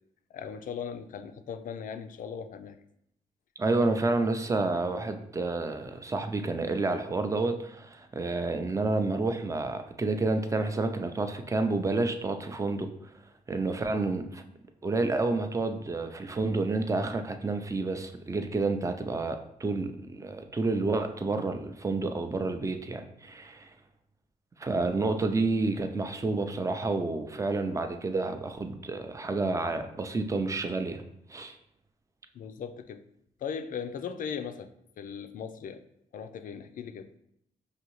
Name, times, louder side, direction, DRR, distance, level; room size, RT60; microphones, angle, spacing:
voice 1, 0.3-2.8 32.3-33.0 33.4-34.7 35.0-35.8 36.1-37.1, left 7 dB, 65° left, 9 dB, 0.4 m, -38 dB
voice 2, 3.6-12.9 13.5-14.4 14.8-23.7 24.6-31.0 31.3-31.6, right 3 dB, 20° right, 7 dB, 0.4 m, -29 dB
5.0 x 2.7 x 3.0 m, 0.76 s
cardioid pair, 75°, 15 cm